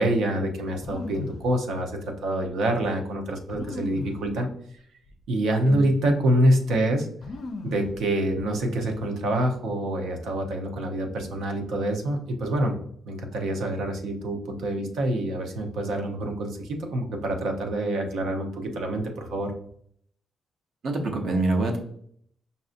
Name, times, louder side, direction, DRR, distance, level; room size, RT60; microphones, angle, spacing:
voice 1, 0.0-1.9 2.2-4.5 5.3-7.1 7.6-12.8 13.1-19.5, right 1 dB, 85° right, 3 dB, 0.7 m, -26 dB
sound 1, 0.8-1.5 2.4-2.5 3.5-4.3 5.1-5.2 5.5-6.0 7.2-8.0 8.3-8.8, left 3 dB, 50° left, 0.4 m, -36 dB
voice 2, 20.8-21.8, right 2 dB, 55° right, 3 dB, 0.8 m, -25 dB
5.3 x 2.6 x 2.5 m, 0.64 s
cardioid pair, 140°, 0 cm